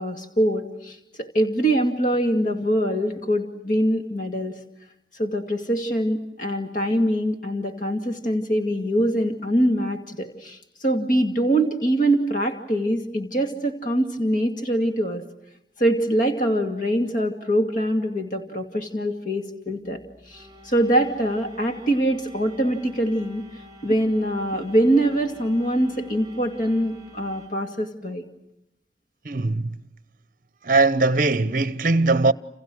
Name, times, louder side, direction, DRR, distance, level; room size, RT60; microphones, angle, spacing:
voice 1, 0.0-4.6 5.1-15.2 15.8-20.0 20.3-23.4 23.8-28.3, right 1 dB, 45° left, 2.4 m, -23 dB
sound 1, 19.9-27.5, equal, 20° right, 7.6 m, -48 dB
voice 2, 29.2-29.8 30.6-32.3, right 3 dB, 45° right, 0.9 m, -20 dB
30.0 x 29.0 x 6.3 m
head